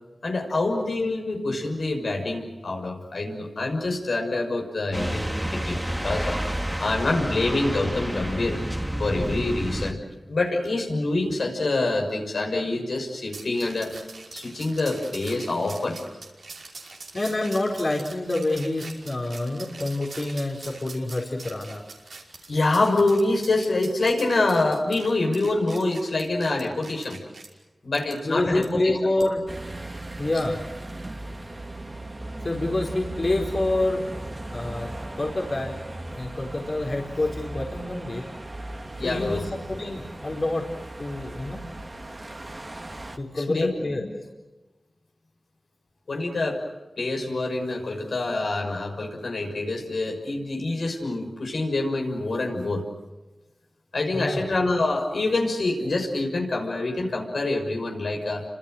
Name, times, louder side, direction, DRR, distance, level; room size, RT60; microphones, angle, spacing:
voice 1, 0.2-6.4 6.8-8.6 9.0-10.0 10.3-13.9 14.3-16.0 22.5-27.2 27.8-29.3 39.0-39.4 43.3-44.0 46.1-46.6 47.0-52.8 53.9-58.4, left 2 dB, 80° left, 1 dB, 6.2 m, -26 dB
sound 1, 4.9-9.9, equal, 10° right, 2.5 m, -29 dB
sound 2, 13.3-27.5 28.1-28.2 28.6-28.7 29.2-29.4, right 3 dB, 85° right, 5.4 m, -43 dB
voice 2, 17.1-21.8 28.2-29.4 30.2-30.6 32.4-34.1 34.5-34.9 35.2-38.2 39.0-40.7 41.0-41.6 43.1-44.1 54.1-54.4, left 2 dB, 55° left, 0 dB, 4.6 m, -27 dB
sound 3, 29.5-43.2, right 2 dB, 40° right, 2.6 m, -37 dB
29.5 x 26.0 x 6.5 m, 1.1 s
cardioid pair, 40°, 0 cm